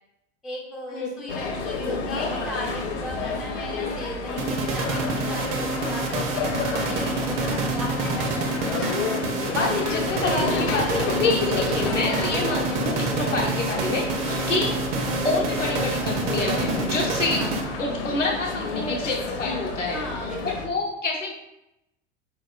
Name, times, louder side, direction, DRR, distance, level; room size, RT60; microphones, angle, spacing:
voice 1, 0.4-8.6 11.8-12.1 14.5-14.7 17.4-17.6 19.9-20.6, left 1 dB, ahead, -2 dB, 0.3 m, -37 dB
sound 1, 1.3-20.7, left 4 dB, 50° left, 0.6 m, -30 dB
sound 2, 4.4-18.0, right 3 dB, 45° right, 0.6 m, -27 dB
voice 2, 9.5-14.8 15.1-17.5 17.8-20.0 20.4-21.3, left 2 dB, 90° left, -2 dB, 0.8 m, -28 dB
4.0 x 2.9 x 2.4 m, 0.88 s
figure-of-eight pair, 80°, 36 cm